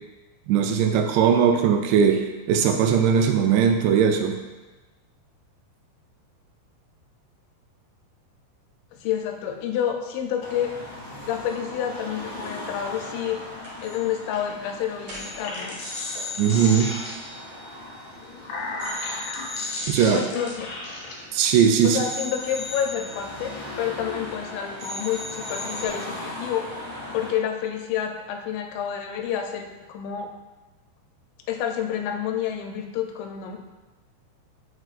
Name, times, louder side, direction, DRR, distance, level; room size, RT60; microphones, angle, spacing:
voice 1, 0.5-4.3 16.4-16.9 19.9-20.2 21.3-22.0, right 7 dB, 85° right, 5 dB, 2.7 m, -19 dB
voice 2, 8.9-10.7 11.3-13.4 13.8-15.8 20.1-20.7 21.8-26.7 27.1-30.3 31.5-33.6, left 9 dB, 85° left, 4 dB, 2.8 m, -29 dB
Car passing by / Traffic noise roadway noise / Engine, 10.4-27.3, left 1 dB, 40° left, 2.5 m, -39 dB
sound 1, 13.6-14.1 14.3-14.5 15.0-18.4 18.8-21.4 21.8-24.5 24.8-25.9, left 2 dB, 50° right, 2.2 m, -38 dB
sound 2, 15.3-17.5 18.1-21.1, left 2 dB, 65° left, 2.6 m, -35 dB
7.7 x 6.3 x 2.4 m, 1.2 s
omnidirectional pair, 5.1 m